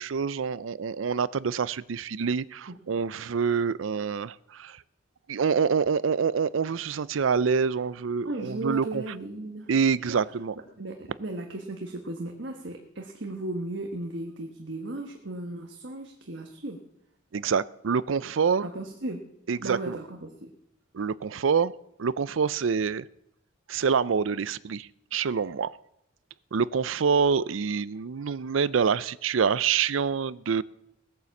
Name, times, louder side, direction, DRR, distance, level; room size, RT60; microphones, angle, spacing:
voice 1, 0.0-4.8 5.3-9.0 9.7-10.6 17.3-18.7 19.5-20.0 20.9-21.7 22.0-23.1 23.7-25.7 26.5-30.6, right 6 dB, 80° right, 18 dB, 0.5 m, -26 dB
voice 2, 8.2-9.7 10.1-10.2 10.8-16.8 18.6-19.3 19.6-20.5, right 2 dB, 65° right, 3 dB, 1.4 m, -36 dB
18.5 x 9.5 x 7.1 m, 0.82 s
head